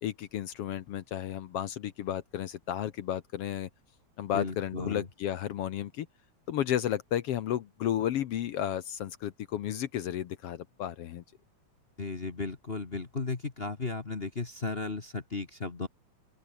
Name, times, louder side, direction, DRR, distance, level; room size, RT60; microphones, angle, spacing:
voice 1, 0.0-3.7 4.2-6.1 6.5-11.2, left 11 dB, 65° left, 1.7 m, -33 dB
voice 2, 4.3-5.1 12.0-15.9, left 3 dB, 30° left, 1.1 m, -35 dB
open air
omnidirectional pair, 3.4 m